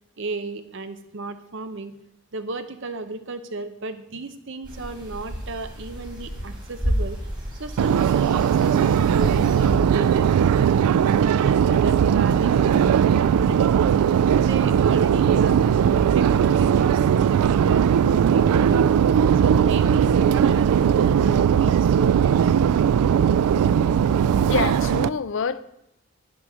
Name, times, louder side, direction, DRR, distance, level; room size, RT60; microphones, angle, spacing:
voice 1, 0.2-1.9 2.3-7.2 7.6-10.8 11.3-13.9 14.3-15.6 16.1-18.9 19.3-22.7, right 3 dB, 55° right, 0.7 m, -34 dB
sound 1, 4.6-9.8, equal, 20° right, 2.7 m, -31 dB
Subway metro underground, 7.8-25.1, right 8 dB, 85° right, 0.3 m, -19 dB
Bowed string instrument, 14.8-20.8, left 1 dB, 30° left, 2.9 m, -54 dB
voice 2, 24.5-25.6, left 5 dB, 55° left, 0.4 m, -26 dB
9.0 x 6.0 x 6.2 m
head